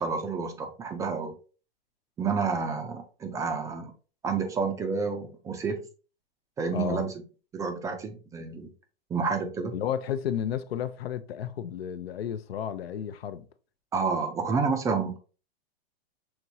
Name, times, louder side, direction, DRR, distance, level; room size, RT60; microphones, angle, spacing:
voice 1, 0.0-1.3 2.2-3.9 4.2-5.8 6.6-7.1 7.5-8.7 9.1-9.7 13.9-15.2, right 5 dB, 10° right, 0.3 m, -29 dB
voice 2, 6.7-7.1 9.7-13.5, left 9 dB, 85° left, 0.6 m, -32 dB
6.1 x 3.0 x 2.6 m
hypercardioid pair, 135°, 30 cm